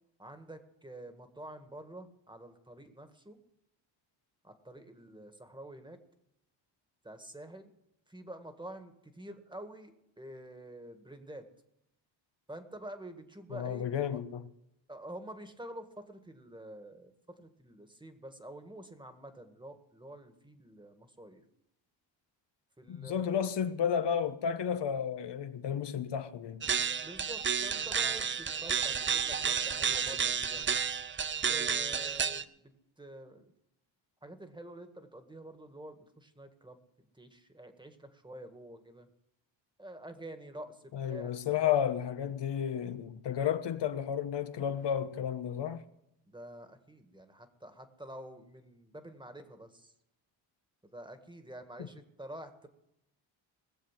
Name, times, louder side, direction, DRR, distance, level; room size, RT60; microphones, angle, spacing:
voice 1, 0.2-3.4 4.4-6.0 7.0-7.7 8.1-11.4 12.5-14.2 14.9-21.4 22.8-23.3 27.0-30.6 31.4-33.5 34.2-36.8 37.1-39.1 39.8-41.3 41.6-41.8 46.3-49.9 50.8-52.7, right 1 dB, 10° right, 1.8 m, -48 dB
voice 2, 13.5-14.5 22.9-26.7 40.9-45.8 51.8-51.9, left 8 dB, 65° left, 1.1 m, -32 dB
sound 1, 26.6-32.4, right 7 dB, 25° right, 0.5 m, -31 dB
20.0 x 7.4 x 7.5 m
cardioid pair, 95°, 45 cm